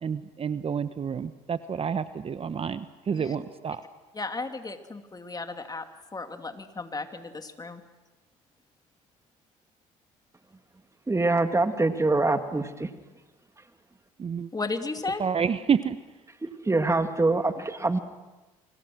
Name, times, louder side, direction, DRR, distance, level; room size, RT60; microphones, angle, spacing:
voice 1, 0.0-3.8 14.2-14.5 15.2-16.0, right 7 dB, 35° right, 12 dB, 1.0 m, -29 dB
voice 2, 4.1-5.9 6.1-7.8 14.5-15.2, left 3 dB, 25° left, 6 dB, 2.7 m, -34 dB
voice 3, 11.1-12.9 16.6-18.0, right 2 dB, 15° right, 8 dB, 2.3 m, -24 dB
29.0 x 25.5 x 6.3 m, 1.2 s
hypercardioid pair, 60°, 16 cm